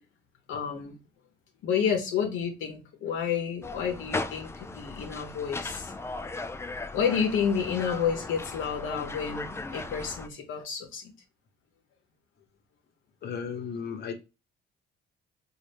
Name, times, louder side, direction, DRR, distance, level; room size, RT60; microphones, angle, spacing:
voice 1, 0.5-0.9 1.6-5.9 6.9-11.1, left 7 dB, 80° left, 0.8 m, -30 dB
sound 1, 3.6-10.3, left 2 dB, 15° left, 0.3 m, -37 dB
voice 2, 13.2-14.1, left 6 dB, 55° left, 1.0 m, -34 dB
4.0 x 2.4 x 3.4 m
cardioid pair, 90°, 20 cm